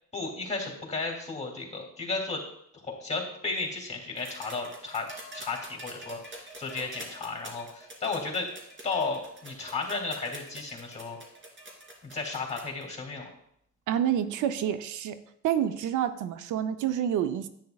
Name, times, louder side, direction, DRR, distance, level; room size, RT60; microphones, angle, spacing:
voice 1, 0.1-2.4 2.7-5.1 5.3-8.5 8.8-11.2 12.0-13.3, left 3 dB, 20° left, 1 dB, 2.7 m, -34 dB
sound 1, 4.2-12.8 14.0-14.1, right 1 dB, 40° right, 2.7 m, -46 dB
voice 2, 13.9-15.2 15.4-17.5, right 10 dB, 80° right, 10 dB, 0.6 m, -28 dB
10.5 x 9.0 x 2.3 m, 0.73 s
cardioid pair, 90°, 30 cm